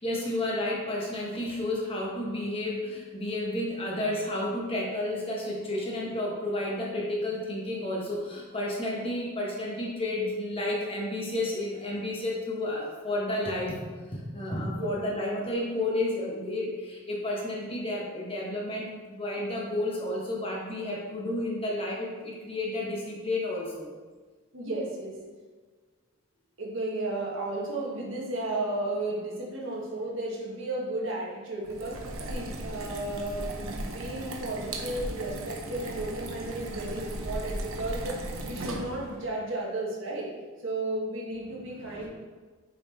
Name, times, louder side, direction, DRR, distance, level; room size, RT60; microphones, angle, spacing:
voice 1, 0.0-13.8 14.1-23.9 41.5-42.1, left 1 dB, 25° left, -3 dB, 1.2 m, -31 dB
voice 2, 24.5-25.2 26.6-32.0 32.3-40.3 40.6-42.1, right 2 dB, 65° right, -3 dB, 1.5 m, -33 dB
sound 1, 31.6-39.2, right 1 dB, 85° right, 0.9 m, -37 dB
6.7 x 4.2 x 4.3 m, 1.4 s
head